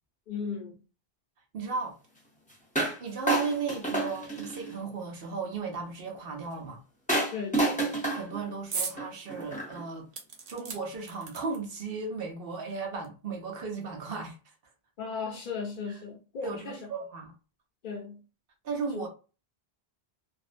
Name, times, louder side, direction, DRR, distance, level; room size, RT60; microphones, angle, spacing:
voice 1, 0.3-0.8 7.3-8.0 15.0-16.9 17.8-18.2 18.9-19.1, left 5 dB, 60° left, 0.7 m, -37 dB
voice 2, 1.5-1.9 3.0-6.8 8.1-10.1 10.5-14.4 16.4-17.3 18.6-19.1, right 4 dB, 65° right, 0.9 m, -35 dB
sound 1, 2.7-3.0 3.3-4.8 7.1-9.8, right 2 dB, 10° left, 0.6 m, -29 dB
sound 2, 8.7-9.0 9.4-9.5 10.1-11.8 12.7-12.8 13.0-13.1, right 5 dB, 50° right, 0.6 m, -37 dB
2.6 x 2.0 x 2.5 m
omnidirectional pair, 1.1 m